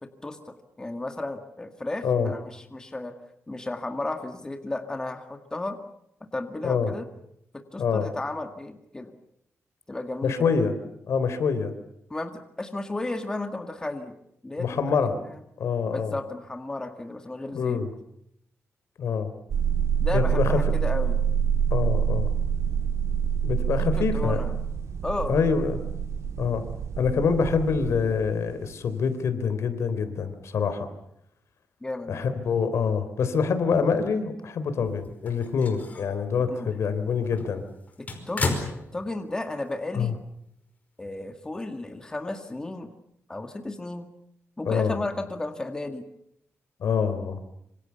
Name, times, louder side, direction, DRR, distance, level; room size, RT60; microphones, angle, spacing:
voice 1, 0.0-3.2 3.5-5.8 6.3-7.1 7.7-9.1 9.9-10.4 12.1-14.1 14.4-15.2 15.9-17.8 20.0-21.2 23.8-24.5 25.0-25.3 31.8-32.3 36.5-36.7 38.3-38.6 38.9-40.2 41.0-42.9 43.3-44.1 44.6-46.0, left 2 dB, 15° left, 6 dB, 1.9 m, -33 dB
voice 2, 7.8-8.1 10.2-10.7 11.1-11.7 14.6-15.2 15.6-16.2 17.5-17.9 19.0-19.3 20.1-20.6 21.7-22.3 23.4-24.4 25.3-25.8 26.4-26.6 27.0-30.9 32.1-37.6 39.9-40.1 44.7-45.0 46.8-47.4, left 6 dB, 75° left, 10 dB, 3.7 m, -25 dB
sound 1, 19.5-28.4, right 8 dB, 85° right, 2.1 m, -26 dB
sound 2, 35.0-36.2 36.7-36.8 37.2-39.4 39.7-39.8 41.0-41.1, left 3 dB, 30° left, 5.1 m, -33 dB
26.5 x 26.0 x 7.1 m, 0.75 s
wide cardioid pair, 160°, 5 cm